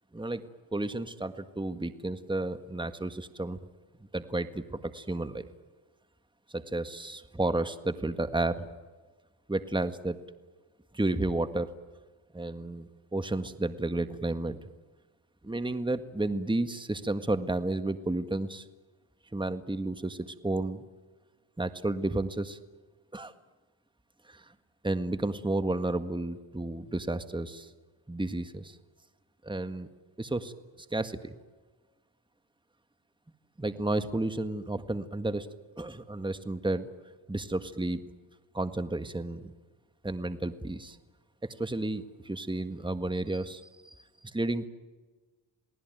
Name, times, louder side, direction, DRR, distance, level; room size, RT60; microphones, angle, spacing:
voice 1, 0.7-3.6 4.1-5.5 6.5-8.7 9.5-10.2 10.9-11.7 12.3-14.6 15.4-18.6 19.3-20.8 21.6-22.6 23.1-23.3 24.3-24.5 24.8-27.7 28.1-28.8 29.4-29.9 30.2-30.5 30.9-31.3 33.6-35.5 35.8-36.9 37.3-38.0 38.5-39.5 40.0-41.0 41.4-43.9 44.3-44.7, right 2 dB, 10° right, 10 dB, 1.7 m, -32 dB
29.0 x 19.0 x 9.3 m, 1.3 s
cardioid pair, 65°, 49 cm